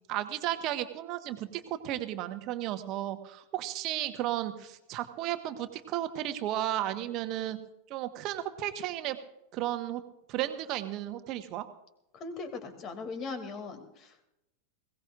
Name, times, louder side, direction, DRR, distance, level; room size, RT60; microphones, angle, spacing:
voice 1, 0.1-7.6 7.9-9.2 9.5-10.0 10.3-11.6, right 13 dB, 40° right, 10 dB, 1.3 m, -34 dB
voice 2, 12.1-14.2, left 4 dB, 30° left, 7 dB, 2.5 m, -39 dB
21.5 x 17.5 x 2.5 m, 0.84 s
figure-of-eight pair, 90°, 0 cm